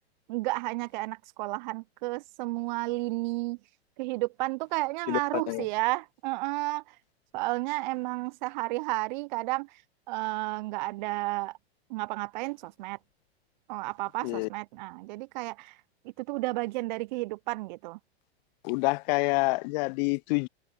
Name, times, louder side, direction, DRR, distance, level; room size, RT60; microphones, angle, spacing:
voice 1, 0.3-3.6 4.0-7.0 7.3-9.8 10.1-11.6 11.9-13.0 13.7-15.8 16.0-18.0, right 22 dB, 45° right, 0.5 m, -32 dB
voice 2, 5.1-5.6 14.2-14.5 18.6-20.5, left 28 dB, 45° left, 0.6 m, -27 dB
hypercardioid pair, 115°, 32 cm